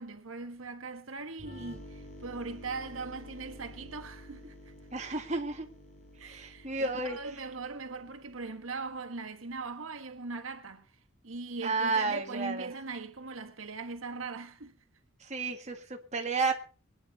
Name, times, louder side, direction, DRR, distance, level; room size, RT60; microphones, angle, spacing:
voice 1, 0.0-4.7 6.2-10.9 11.2-14.7, right 3 dB, 85° right, 1.5 m, -40 dB
sound 1, 1.4-9.0, equal, 35° left, 4.8 m, -50 dB
voice 2, 4.9-5.7 6.2-7.2 11.6-12.7 15.2-16.5, right 3 dB, 35° right, 2.0 m, -32 dB
23.5 x 10.0 x 4.1 m
head